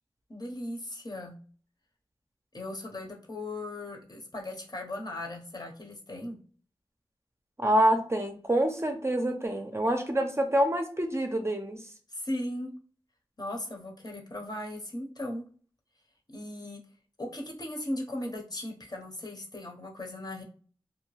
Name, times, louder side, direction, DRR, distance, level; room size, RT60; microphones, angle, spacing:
voice 1, 0.3-1.3 2.5-6.4 12.1-12.7 13.4-15.5 16.3-16.8 17.2-20.4, left 1 dB, 40° left, 1 dB, 0.8 m, -37 dB
voice 2, 7.6-11.8, right 1 dB, 25° right, 4 dB, 0.5 m, -26 dB
2.7 x 2.2 x 3.1 m, 0.42 s
wide cardioid pair, 65°, 10 cm